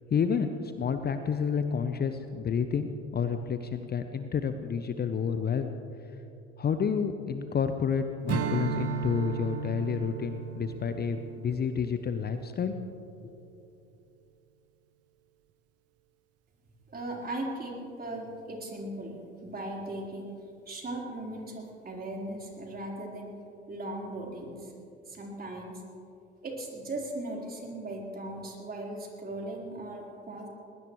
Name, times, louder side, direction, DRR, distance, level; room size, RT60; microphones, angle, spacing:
voice 1, 0.1-5.7 6.6-12.7, left 6 dB, 30° left, 9 dB, 0.9 m, -30 dB
Strum, 8.3-13.0, right 7 dB, 45° right, 1.1 m, -36 dB
voice 2, 16.9-20.3 20.7-23.3 23.7-24.7 25.1-25.8 26.4-30.5, right 1 dB, 25° right, -2 dB, 4.2 m, -38 dB
20.5 x 19.5 x 3.2 m, 2.7 s
figure-of-eight pair, 60°, 34 cm